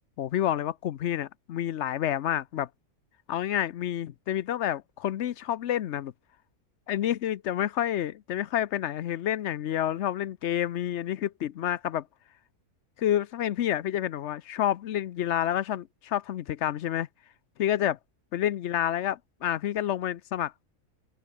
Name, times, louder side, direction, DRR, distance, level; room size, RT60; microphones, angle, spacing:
voice 1, 0.2-2.7 3.3-6.1 6.9-12.1 13.0-17.1 17.6-18.0 18.3-20.5, left 11 dB, 60° left, 0.8 m, -29 dB
omnidirectional pair, 1.6 m